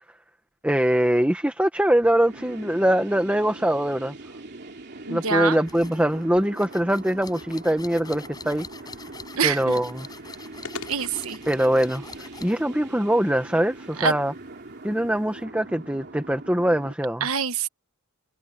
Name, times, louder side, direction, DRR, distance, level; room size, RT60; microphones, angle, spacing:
voice 1, 0.6-4.1 5.1-8.6 9.4-10.1 11.5-14.3 14.8-17.3, right 1 dB, 5° right, 1.3 m, -23 dB
sound 1, 2.0-16.9, right 2 dB, 50° right, 3.0 m, -42 dB
voice 2, 5.1-5.6 9.4-9.8 10.7-11.4 14.0-14.1 17.2-17.7, right 6 dB, 70° right, 1.2 m, -25 dB
sound 2, 5.7-12.7, left 4 dB, 20° left, 6.6 m, -44 dB
sound 3, 8.4-15.4, left 4 dB, 80° left, 7.0 m, -48 dB
head